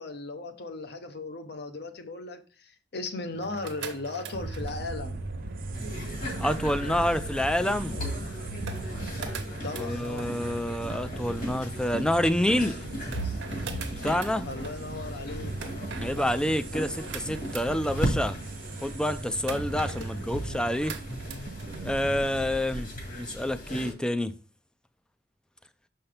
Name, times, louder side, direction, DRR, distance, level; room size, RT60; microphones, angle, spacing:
voice 1, 0.0-5.2 9.5-10.3 14.4-15.5 20.3-20.7 21.2-21.5, left 3 dB, 65° left, 1.0 m, -37 dB
sound 1, 3.3-21.8, right 3 dB, 85° right, 1.1 m, -42 dB
sound 2, 4.3-22.6, right 2 dB, 50° right, 0.6 m, -39 dB
sound 3, 5.7-23.9, equal, 50° left, 1.9 m, -37 dB
voice 2, 6.4-8.0 9.8-12.8 14.0-14.5 15.9-18.4 18.8-21.0 21.8-24.3, left 1 dB, 5° left, 0.4 m, -28 dB
6.7 x 5.6 x 3.4 m
head